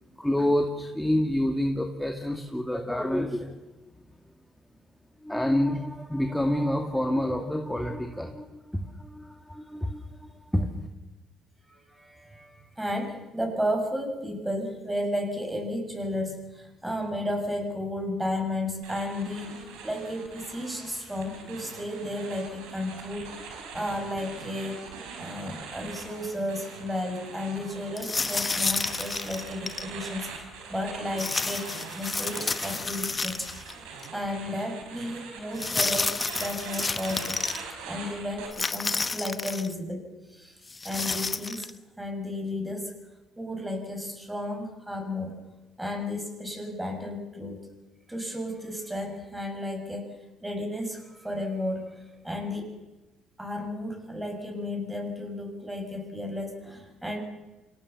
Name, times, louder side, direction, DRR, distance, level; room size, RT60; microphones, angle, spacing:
voice 1, 0.1-3.5 5.2-10.9, left 1 dB, 5° left, 3 dB, 2.3 m, -28 dB
voice 2, 11.7-19.5 19.8-23.3 23.7-24.9 25.2-31.6 31.9-33.5 34.1-40.6 40.8-41.7 42.0-43.0 43.4-45.5 45.8-47.6 48.1-50.1 50.4-52.7 53.4-57.2, left 1 dB, 10° right, 3 dB, 7.4 m, -33 dB
sound 1, 18.8-38.5, right 5 dB, 80° right, 4.7 m, -42 dB
sound 2, 28.0-29.9 31.2-33.7 34.0-34.1 35.6-37.6 38.5-39.7 40.7-41.7, left 3 dB, 30° left, 1.0 m, -30 dB
26.5 x 18.0 x 7.2 m, 1.1 s
hypercardioid pair, 60°, 0 cm